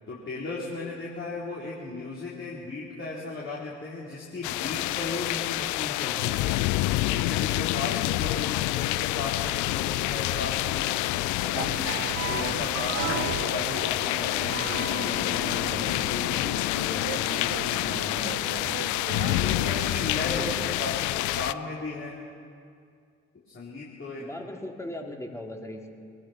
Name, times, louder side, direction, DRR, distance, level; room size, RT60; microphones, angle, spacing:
voice 1, 0.1-6.6 7.1-11.9 12.3-18.9 19.4-22.2 23.5-24.3, left 3 dB, 35° left, -5 dB, 4.4 m, -36 dB
sound 1, 4.4-21.5, left 18 dB, 60° left, 0.6 m, -28 dB
sound 2, 11.5-21.0, right 13 dB, 40° right, 0.5 m, -37 dB
voice 2, 20.2-20.7 24.2-25.9, left 1 dB, 10° left, 1 dB, 3.0 m, -38 dB
22.5 x 19.5 x 6.0 m, 2.3 s
figure-of-eight pair, 50°, 34 cm